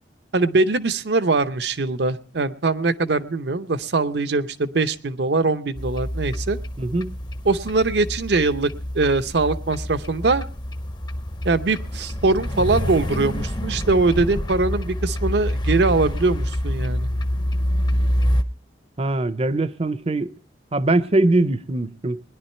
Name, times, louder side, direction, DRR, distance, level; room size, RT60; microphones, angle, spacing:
voice 1, 0.3-6.6 7.4-10.4 11.4-17.1, right 3 dB, 65° right, 0.7 m, -22 dB
sound 1, 5.8-18.4, equal, 25° left, 0.7 m, -26 dB
voice 2, 6.8-7.2 19.0-20.3 20.7-22.2, right 2 dB, 35° right, 0.6 m, -22 dB
20.0 x 11.0 x 4.3 m
head